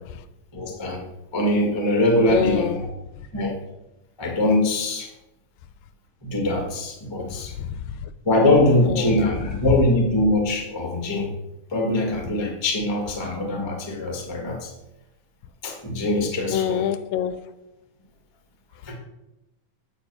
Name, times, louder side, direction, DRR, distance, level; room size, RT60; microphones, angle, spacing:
voice 1, 0.5-1.0 1.3-2.9 3.3-3.6 4.2-5.1 6.2-7.5 8.2-11.3 11.7-14.7 15.6-16.8 18.8-18.9, left 1 dB, 20° left, 0.6 m, -22 dB
voice 2, 2.3-2.8 7.6-7.8 8.9-9.2 16.5-17.4, left 10 dB, 85° left, 2.3 m, -25 dB
8.9 x 5.2 x 6.9 m
omnidirectional pair, 4.0 m